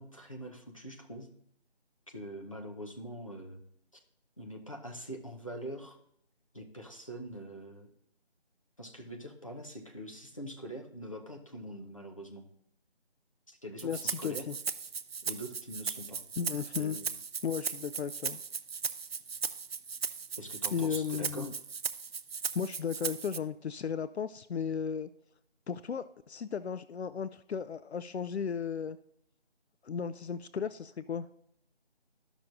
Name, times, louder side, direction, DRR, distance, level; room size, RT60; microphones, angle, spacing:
voice 1, 0.0-1.3 2.1-3.6 4.4-6.0 6.5-7.9 8.8-12.4 13.5-14.5 15.2-16.2 16.7-17.2 20.4-21.5, equal, 30° left, 1 dB, 0.7 m, -43 dB
voice 2, 13.8-14.5 16.4-17.0 17.4-18.4 20.7-21.5 22.5-25.1 25.7-29.0 29.8-31.3, left 7 dB, 75° left, 13 dB, 0.5 m, -35 dB
Rattle (instrument), 13.8-23.4, right 6 dB, 65° right, 0.5 m, -37 dB
13.0 x 6.0 x 2.5 m, 0.73 s
figure-of-eight pair, 180°, 33 cm